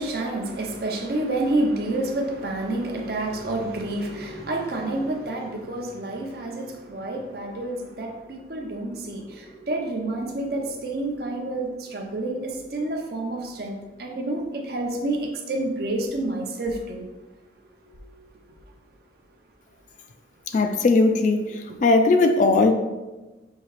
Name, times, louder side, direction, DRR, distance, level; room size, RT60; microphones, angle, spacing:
voice 1, 0.0-17.1 17.9-18.3 20.5-20.6 21.7-21.8, right 2 dB, 55° right, 1 dB, 0.6 m, -29 dB
voice 2, 20.5-22.7, left 3 dB, 45° left, 6 dB, 0.3 m, -19 dB
5.5 x 2.8 x 3.1 m, 1.1 s
head